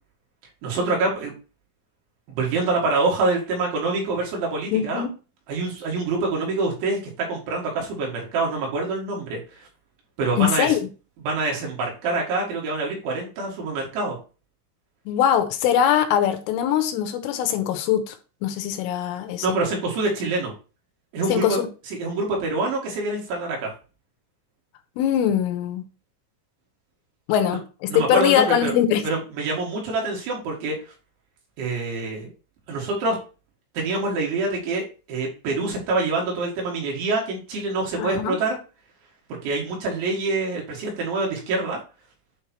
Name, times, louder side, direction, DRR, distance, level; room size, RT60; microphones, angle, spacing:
voice 1, 0.6-1.3 2.3-5.0 5.5-9.7 10.2-10.7 11.2-14.2 19.4-20.5 21.1-21.6 21.9-23.7 27.9-28.7 29.0-30.8 31.6-32.3 32.7-33.2 33.7-38.6 39.4-41.8, right 3 dB, 70° right, 4.3 m, -26 dB
voice 2, 4.7-5.1 10.4-10.8 15.1-18.2 18.4-19.6 21.3-21.7 25.0-25.8 27.3-29.0 38.0-38.4, left 10 dB, 85° left, 3.4 m, -22 dB
8.8 x 3.4 x 4.4 m
omnidirectional pair, 5.7 m